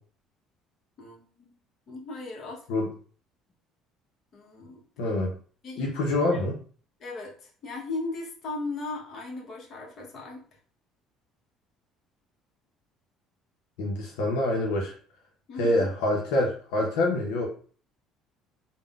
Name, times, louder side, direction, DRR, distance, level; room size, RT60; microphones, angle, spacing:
voice 1, 1.0-1.5 1.9-2.9 4.3-4.8 5.6-6.0 6.3-6.4 7.0-10.5 15.5-15.9, left 3 dB, 50° left, -1 dB, 0.9 m, -37 dB
voice 2, 5.0-5.4 5.8-6.5 13.8-14.9 15.6-17.5, left 1 dB, 85° left, -1 dB, 0.6 m, -26 dB
3.6 x 2.1 x 2.3 m, 0.43 s
supercardioid pair, 95°, 0 cm